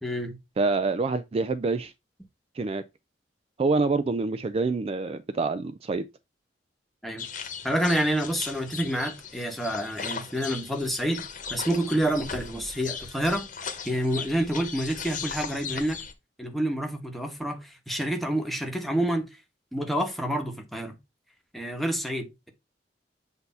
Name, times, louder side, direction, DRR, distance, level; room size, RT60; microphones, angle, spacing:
voice 1, 0.0-0.4 7.0-7.3 7.6-13.5 13.8-16.0 16.4-19.3 19.7-21.0 21.5-22.5, right 1 dB, ahead, 1.2 m, -28 dB
voice 2, 0.6-1.9 2.6-2.8 3.6-6.0, right 3 dB, 35° right, 0.4 m, -26 dB
sound 1, 7.2-16.1, left 6 dB, 50° left, 1.1 m, -38 dB
8.0 x 2.7 x 5.4 m
head